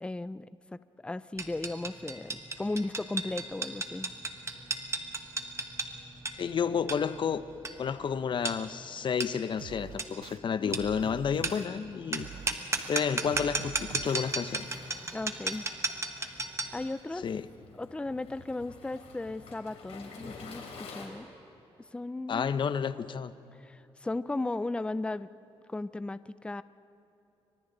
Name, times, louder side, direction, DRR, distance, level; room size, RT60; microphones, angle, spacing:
voice 1, 0.0-0.5 1.0-4.1 10.6-10.7 15.1-15.6 16.7-17.3 17.7-20.6 20.9-21.3 21.9-22.6 23.6-25.3 25.7-26.6, left 2 dB, 10° left, 15 dB, 0.5 m, -36 dB
sound 1, 1.4-16.8, right 3 dB, 25° right, 1.5 m, -36 dB
voice 2, 6.3-7.4 7.8-12.3 12.9-14.7 17.2-17.5 22.3-23.3, left 7 dB, 50° left, 14 dB, 0.8 m, -31 dB
sound 2, 9.6-10.4 10.7-11.7 12.1-12.9 13.2-14.2, right 10 dB, 85° right, 0.7 m, -45 dB
Waves surf, 14.0-21.1, left 4 dB, 75° left, 3.5 m, -50 dB
29.5 x 25.0 x 4.0 m, 3.0 s
cardioid pair, 95°, 10 cm